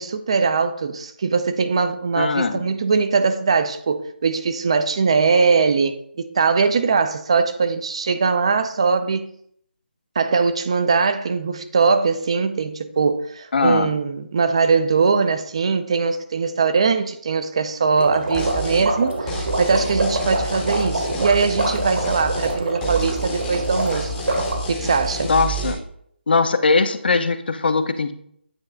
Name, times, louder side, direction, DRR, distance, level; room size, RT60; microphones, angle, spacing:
voice 1, 0.0-9.3 10.2-24.1 24.7-25.3, right 5 dB, 30° right, 0.3 m, -21 dB
voice 2, 2.2-2.7 13.5-14.0 25.2-25.8 26.3-28.1, left 4 dB, 60° left, 0.6 m, -20 dB
sound 1, 18.0-24.6, right 2 dB, 75° right, 1.7 m, -26 dB
sound 2, 18.3-18.9 19.3-22.6 22.8-25.7, right 1 dB, 10° left, 0.7 m, -29 dB
9.0 x 3.2 x 3.8 m
figure-of-eight pair, 170°, 6 cm